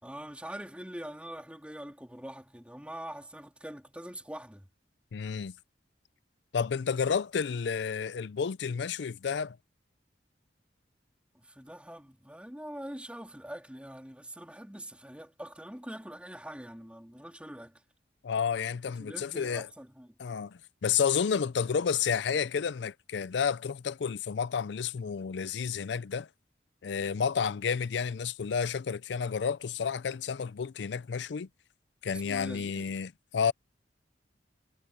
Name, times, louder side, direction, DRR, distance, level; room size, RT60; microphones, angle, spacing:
voice 1, 0.0-4.7 11.3-17.8 18.9-20.2 32.1-32.9, right 1 dB, 5° right, 3.3 m, -44 dB
voice 2, 5.1-5.5 6.5-9.6 18.2-19.7 20.2-26.3 26.8-31.5 32.0-33.5, left 6 dB, 65° left, 0.4 m, -31 dB
head